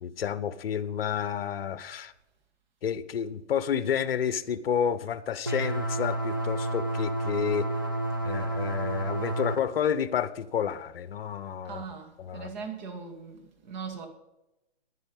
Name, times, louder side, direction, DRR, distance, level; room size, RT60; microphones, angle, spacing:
voice 1, 0.0-2.1 2.8-7.7 8.2-11.8 12.2-12.5, left 8 dB, 55° left, 0.9 m, -30 dB
sound 1, 5.4-9.6, right 1 dB, 20° right, 0.3 m, -30 dB
voice 2, 11.6-14.1, right 5 dB, 40° right, 2.2 m, -40 dB
10.0 x 9.6 x 5.4 m
hypercardioid pair, 155°, 34 cm